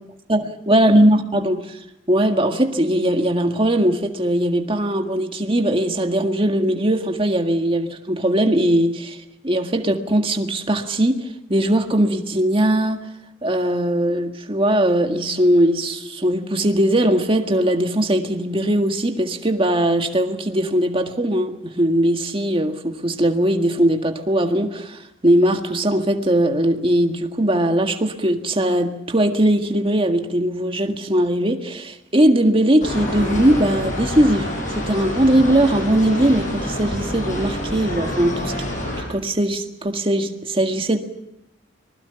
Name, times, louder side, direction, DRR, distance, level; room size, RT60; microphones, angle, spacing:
voice 1, 0.3-13.0 13.4-41.0, right 1 dB, 30° right, 1.8 m, -20 dB
sound 1, 32.8-39.0, left 1 dB, 40° left, 7.5 m, -27 dB
25.5 x 20.5 x 6.9 m
head